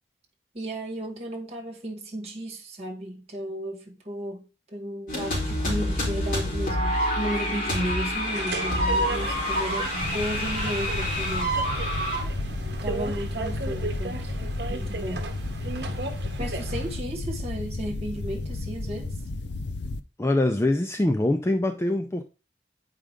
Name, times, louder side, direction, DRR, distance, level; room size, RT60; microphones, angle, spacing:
voice 1, 0.5-4.4 4.7-11.6 12.8-14.3 14.7-15.3 16.4-19.1, right 1 dB, 35° right, 2.0 m, -34 dB
sound 1, 5.1-12.2, equal, 45° left, 3.6 m, -27 dB
sound 2, 8.2-17.0, right 3 dB, 70° right, 1.0 m, -35 dB
sound 3, 10.0-20.0, left 2 dB, 80° left, 0.6 m, -33 dB
voice 2, 20.2-22.2, left 1 dB, 15° left, 0.4 m, -23 dB
8.5 x 5.1 x 3.6 m
head